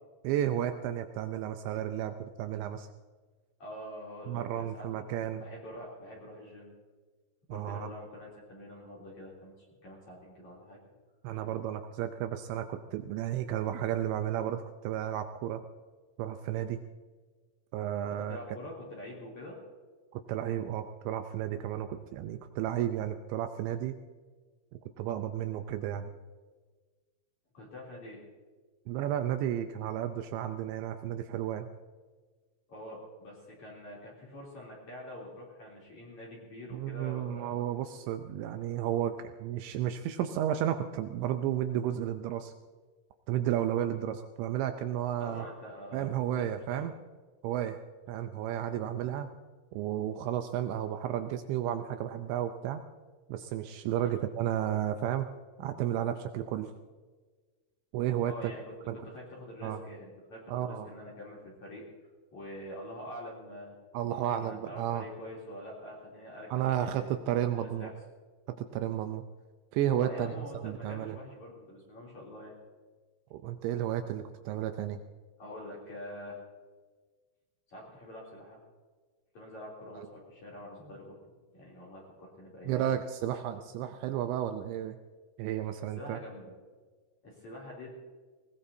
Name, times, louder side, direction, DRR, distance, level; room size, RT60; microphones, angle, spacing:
voice 1, 0.2-2.9 4.3-5.4 7.5-7.9 11.2-15.6 16.2-16.8 17.7-18.4 20.1-24.0 25.0-26.1 28.9-31.7 36.7-42.5 43.3-45.5 45.9-46.9 47.4-47.8 48.1-49.3 49.7-52.8 53.3-55.3 55.6-56.7 57.9-58.5 58.9-59.0 59.6-59.8 60.5-60.9 63.9-65.1 66.5-67.9 68.5-69.2 69.7-71.2 73.3-75.0 80.0-80.1 82.6-85.0 85.4-86.2, right 11 dB, 85° right, 7 dB, 2.6 m, -32 dB
voice 2, 3.6-6.7 7.5-9.5 9.8-10.8 18.3-19.6 27.5-28.2 32.7-37.5 45.2-46.4 46.7-46.9 54.0-54.2 58.2-58.6 59.0-61.9 62.3-63.7 64.1-66.5 66.8-67.2 67.6-67.9 70.0-72.5 75.4-76.4 77.7-78.6 79.3-81.2 81.5-83.0 85.9-86.5 87.2-87.9, left 1 dB, 40° left, -4 dB, 3.9 m, -45 dB
21.0 x 19.5 x 2.7 m, 1.4 s
omnidirectional pair, 5.9 m